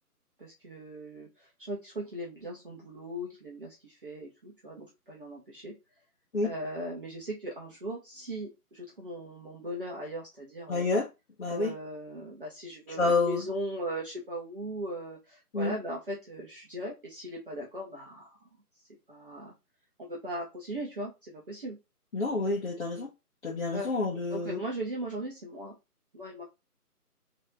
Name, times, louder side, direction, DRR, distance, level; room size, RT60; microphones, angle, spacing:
voice 1, 0.4-5.7 6.4-10.8 11.5-18.4 19.1-19.5 20.0-21.8 22.4-22.6 23.7-23.9 24.3-25.7 26.1-26.4, equal, 35° right, 0.9 m, -38 dB
voice 2, 10.7-11.1 11.4-11.7 13.0-13.4 15.5-15.7 22.1-23.1 23.4-24.6, left 3 dB, 50° left, 0.9 m, -28 dB
4.1 x 2.9 x 2.5 m
figure-of-eight pair, 160°, 46 cm